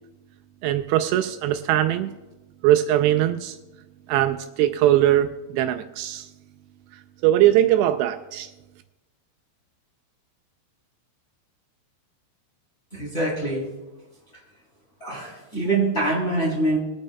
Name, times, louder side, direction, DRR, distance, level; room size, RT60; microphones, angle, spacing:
voice 1, 0.6-2.1 2.6-3.6 4.1-6.3 7.2-8.5, right 12 dB, 85° right, 7 dB, 2.6 m, -21 dB
voice 2, 12.9-13.7 15.0-16.8, right 2 dB, 15° left, -5 dB, 2.9 m, -24 dB
23.5 x 8.9 x 2.2 m, 1.1 s
omnidirectional pair, 5.0 m